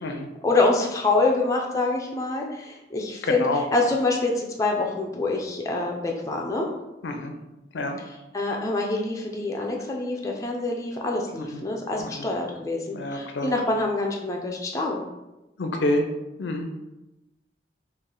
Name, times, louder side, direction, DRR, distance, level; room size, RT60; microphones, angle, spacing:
voice 1, 0.4-6.7 8.0-15.0, left 2 dB, 20° left, 0 dB, 0.4 m, -26 dB
voice 2, 3.3-3.6 7.0-7.3 7.7-8.0 11.5-11.6 12.0-12.2 12.9-13.5 15.6-16.1 16.4-16.7, left 2 dB, 90° left, 5 dB, 0.5 m, -27 dB
3.1 x 2.4 x 3.7 m, 0.98 s
head